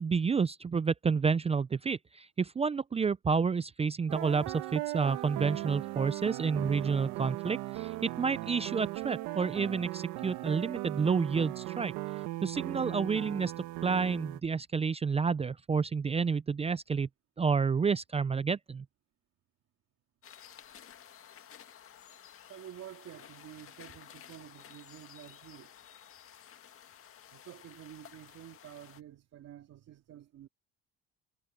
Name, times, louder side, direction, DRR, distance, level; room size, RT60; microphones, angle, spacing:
voice 1, 0.0-11.9 12.4-13.5 13.8-17.1 17.4-18.8, right 5 dB, 20° right, 0.5 m, -30 dB
sound 1, 4.1-14.4, right 18 dB, 85° right, 1.7 m, -38 dB
sound 2, 20.2-29.0, left 9 dB, 45° left, 2.0 m, -53 dB
voice 2, 22.5-25.7 27.3-30.5, right 12 dB, 60° right, 3.0 m, -50 dB
cardioid pair, 105°, 29 cm